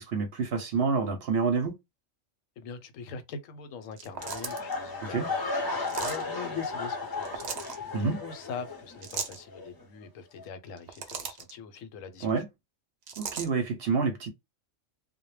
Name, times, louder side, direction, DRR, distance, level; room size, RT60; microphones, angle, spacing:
voice 1, 0.0-1.7 5.0-5.3 7.9-8.2 12.2-12.5 13.2-14.3, right 5 dB, 60° right, 0.7 m, -28 dB
voice 2, 2.6-12.4, left 5 dB, 85° left, 1.0 m, -42 dB
sound 1, 3.9-4.7 5.8-6.2 7.2-7.8 9.0-9.4 10.7-11.5 13.1-13.5, right 6 dB, 85° right, 0.3 m, -36 dB
sound 2, 4.2-9.2 9.5-9.8 10.4-10.5, left 3 dB, 30° left, 0.4 m, -35 dB
2.2 x 2.1 x 3.0 m
omnidirectional pair, 1.3 m